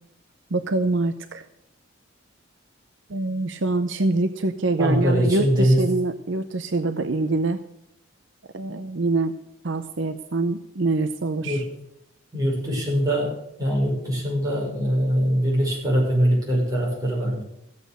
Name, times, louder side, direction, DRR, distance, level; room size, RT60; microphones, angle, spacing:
voice 1, 0.5-1.4 3.1-7.6 8.5-9.4 9.6-11.6, right 2 dB, 65° right, 9 dB, 0.7 m, -25 dB
voice 2, 4.8-6.0 11.4-11.7 12.3-13.3 13.6-17.4, equal, 15° right, -4 dB, 6.2 m, -22 dB
15.0 x 8.3 x 6.7 m, 0.82 s
head